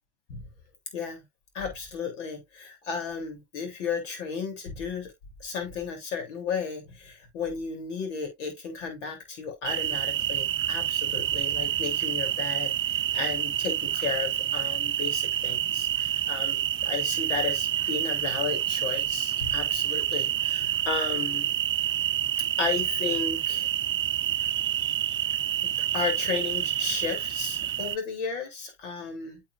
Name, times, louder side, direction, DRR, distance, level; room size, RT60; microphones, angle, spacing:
voice 1, 0.9-1.2 1.5-5.1 5.4-21.6 22.6-23.7 25.6-29.4, left 5 dB, 85° left, 3.3 m, -34 dB
sound 1, 9.6-28.0, right 11 dB, 35° right, 0.6 m, -28 dB
9.4 x 5.9 x 2.5 m
hypercardioid pair, 70°, 36 cm